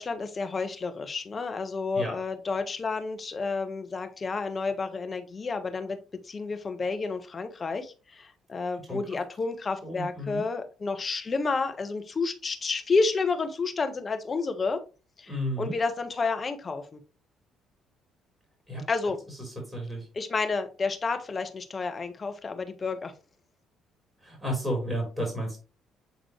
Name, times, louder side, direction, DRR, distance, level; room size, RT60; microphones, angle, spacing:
voice 1, 0.0-6.0 6.2-14.8 15.2-17.0 18.9-19.2 20.1-23.1, left 4 dB, 40° left, 7 dB, 1.2 m, -30 dB
voice 2, 9.8-10.4 15.3-15.7 18.7-18.8 19.4-20.1 24.2-25.6, equal, 15° right, 0 dB, 3.8 m, -32 dB
8.1 x 3.9 x 3.2 m, 0.33 s
hypercardioid pair, 50°, 0 cm